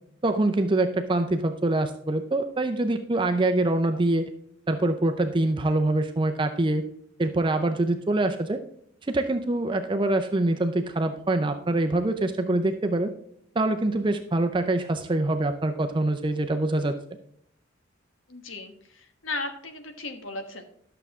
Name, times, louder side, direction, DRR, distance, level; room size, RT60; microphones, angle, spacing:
voice 1, 0.2-4.3 4.7-6.8 7.2-8.6 9.1-13.1 13.6-17.0, right 2 dB, 25° right, 6 dB, 0.5 m, -24 dB
voice 2, 18.3-20.6, left 2 dB, 90° left, 6 dB, 1.3 m, -36 dB
11.5 x 6.8 x 3.6 m, 0.69 s
head